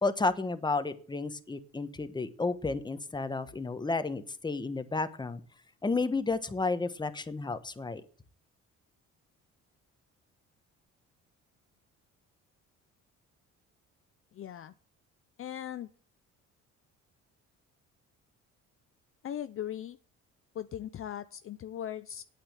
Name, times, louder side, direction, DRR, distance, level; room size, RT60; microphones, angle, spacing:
voice 1, 0.0-5.4 5.8-8.0, left 3 dB, 15° left, 10 dB, 1.1 m, -32 dB
voice 2, 14.3-14.7 15.4-15.9 19.2-20.0 20.5-22.2, left 10 dB, 45° left, 11 dB, 0.6 m, -39 dB
8.8 x 8.6 x 7.5 m, 0.44 s
cardioid pair, 100°, 30 cm